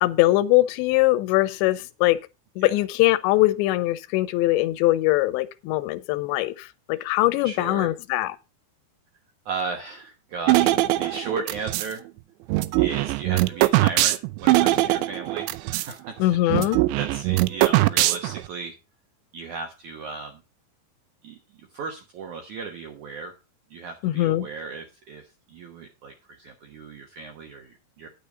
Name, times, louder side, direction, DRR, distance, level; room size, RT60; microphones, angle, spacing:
voice 1, 0.0-2.2 2.6-8.4 16.2-16.8 24.0-24.5, left 17 dB, 85° left, 2.9 m, -22 dB
voice 2, 7.4-7.9 9.5-12.0 12.8-18.8 19.3-20.4 21.2-23.4 23.7-28.1, right 4 dB, 70° right, 1.8 m, -36 dB
sound 1, 10.5-11.9 12.5-15.9 16.2-16.3 16.5-18.5, right 17 dB, 90° right, 3.0 m, -21 dB
10.0 x 6.9 x 5.0 m
omnidirectional pair, 5.1 m